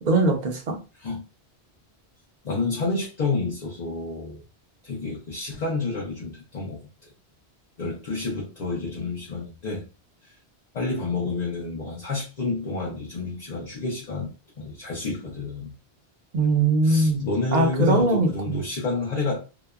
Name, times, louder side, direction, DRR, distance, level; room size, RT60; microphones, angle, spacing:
voice 1, 0.0-0.8 16.3-18.6, right 2 dB, 50° right, 0.7 m, -22 dB
voice 2, 2.4-4.4 4.8-6.8 7.8-9.9 10.7-15.7 16.8-19.4, left 3 dB, 50° left, 0.6 m, -29 dB
2.8 x 2.0 x 2.3 m
omnidirectional pair, 1.1 m